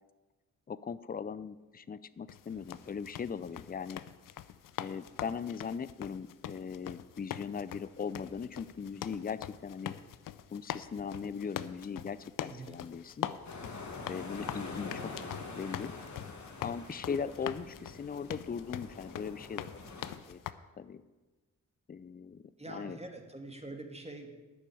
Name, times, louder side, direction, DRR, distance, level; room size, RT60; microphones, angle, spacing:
voice 1, 0.7-4.0 4.8-9.9 10.5-13.3 14.1-15.9 16.6-19.8 20.2-20.4 20.8-21.0 21.9-22.4 22.7-23.0, left 6 dB, 25° left, 16 dB, 0.5 m, -39 dB
sound 1, 1.6-3.8 4.3-5.1 6.5-6.7 7.1-7.4 7.7-10.2 10.8-11.0 13.1-14.3, equal, 80° right, 4.2 m, -64 dB
sound 2, 2.3-20.5, left 11 dB, 75° left, 0.6 m, -43 dB
voice 2, 12.4-12.8 22.6-24.3, right 2 dB, 20° right, 4 dB, 2.2 m, -45 dB
sound 3, 13.4-20.1, left 3 dB, 60° left, 2.0 m, -45 dB
9.4 x 6.7 x 8.6 m, 1.2 s
supercardioid pair, 45°, 33 cm